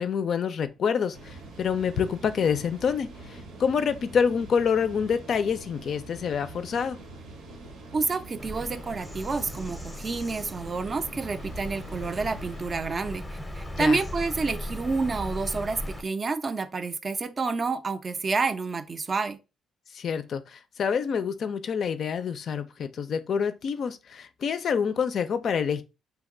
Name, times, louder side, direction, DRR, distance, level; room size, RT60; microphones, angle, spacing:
voice 1, 0.0-7.0 13.7-14.0 19.9-25.8, left 6 dB, 60° left, 0.3 m, -27 dB
sound 1, 1.1-12.6, right 2 dB, 85° right, 0.7 m, -45 dB
voice 2, 7.9-19.4, right 4 dB, 35° right, 0.3 m, -29 dB
Bird vocalization bird call bird song, 8.4-16.0, left 1 dB, 10° left, 0.6 m, -38 dB
2.8 x 2.2 x 3.6 m
cardioid pair, 85°, 0 cm